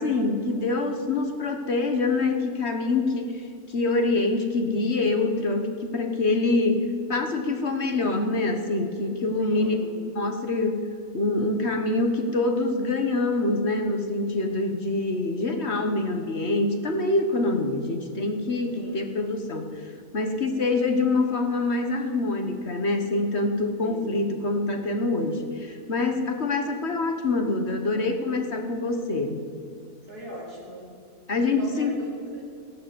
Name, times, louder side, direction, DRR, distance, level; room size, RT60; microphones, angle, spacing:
voice 1, 0.0-9.8 10.0-10.9 11.1-29.5 31.3-32.0, left 2 dB, 45° left, 5 dB, 1.5 m, -25 dB
voice 2, 9.4-9.9 18.7-19.0 23.8-24.1 30.1-30.9 31.6-32.4, equal, 85° right, -4 dB, 4.7 m, -40 dB
16.0 x 11.5 x 7.8 m, 2.4 s
omnidirectional pair, 1.6 m